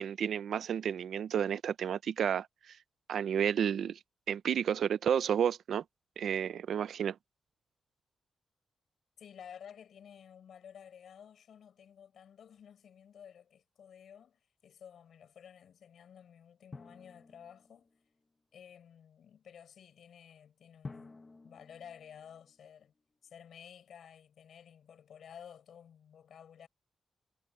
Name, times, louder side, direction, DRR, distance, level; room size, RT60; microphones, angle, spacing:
voice 1, 0.0-2.5 3.1-4.0 4.3-5.8 6.2-7.2, right 8 dB, 75° right, 0.7 m, -31 dB
voice 2, 9.2-17.9 18.5-22.9 23.2-26.7, left 8 dB, 70° left, 7.9 m, -53 dB
Drum, 16.7-18.2 20.8-23.0, left 3 dB, 25° left, 1.8 m, -51 dB
wide cardioid pair, 140°, 0 cm